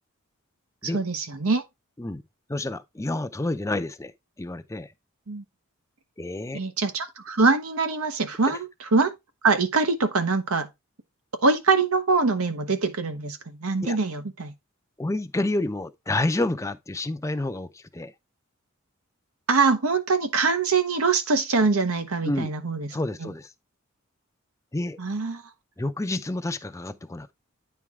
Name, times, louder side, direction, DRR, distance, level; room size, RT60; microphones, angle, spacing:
voice 1, 0.9-1.6 5.3-5.4 6.5-8.7 8.9-9.1 9.4-10.7 11.4-14.5 19.5-22.9 25.0-25.4, right 4 dB, 85° right, 0.9 m, -23 dB
voice 2, 2.5-4.1 4.4-4.9 6.2-6.6 8.5-8.6 13.8-14.0 15.0-18.1 22.2-22.5 22.9-23.5 24.7-25.0 25.8-27.3, left 2 dB, 15° left, 0.5 m, -29 dB
9.4 x 4.6 x 3.6 m
head